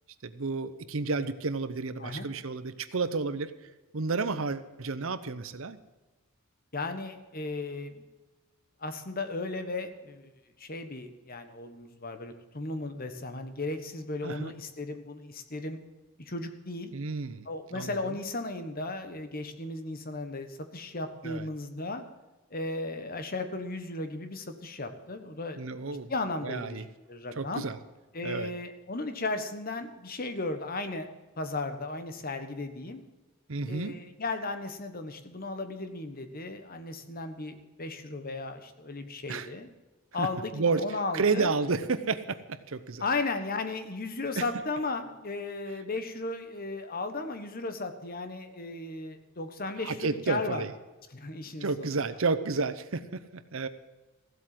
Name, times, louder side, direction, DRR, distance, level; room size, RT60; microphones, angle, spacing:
voice 1, 0.2-3.5 3.9-5.8 14.2-14.5 16.9-17.5 17.7-18.0 21.2-21.5 25.6-26.1 26.4-26.8 27.4-27.8 28.2-28.5 33.5-33.9 39.3-39.5 40.2-40.3 40.5-40.8 41.1-43.0 44.4-44.5 49.8-50.7 51.6-53.7, right 4 dB, 65° right, 13 dB, 0.8 m, -31 dB
voice 2, 6.7-8.0 8.8-10.3 10.6-15.8 16.2-16.9 17.4-22.0 22.5-25.6 26.1-27.6 28.1-31.1 31.4-33.0 33.7-39.7 40.1-41.5 43.0-50.6 51.1-52.0, left 3 dB, 40° left, 8 dB, 1.3 m, -35 dB
15.0 x 8.1 x 7.6 m, 1.1 s
head